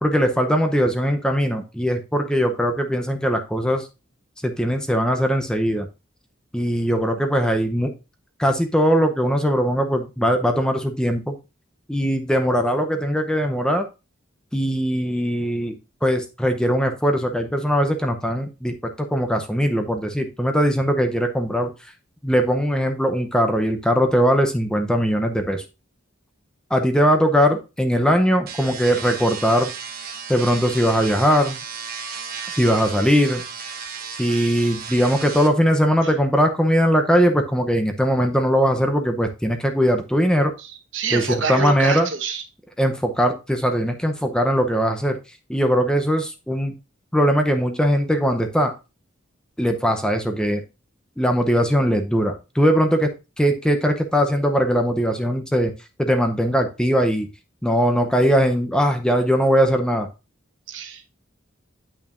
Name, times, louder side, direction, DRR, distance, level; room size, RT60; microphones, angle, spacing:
voice 1, 0.0-3.9 4.4-5.9 6.5-7.9 8.4-11.4 11.9-13.9 14.5-21.7 22.2-25.6 26.7-29.7 30.3-31.6 32.5-33.5 34.2-40.5 41.1-42.1 42.8-45.2 45.5-46.7 47.1-48.7 49.6-50.6 51.2-53.1 53.4-55.7 56.0-57.3 57.6-60.1, equal, 5° left, 5 dB, 0.6 m, -20 dB
sound 1, 28.5-35.5, right 6 dB, 45° right, 1.1 m, -34 dB
voice 2, 40.6-42.4 60.7-61.1, right 5 dB, 70° right, 6 dB, 1.2 m, -27 dB
8.9 x 5.7 x 2.5 m, 0.28 s
head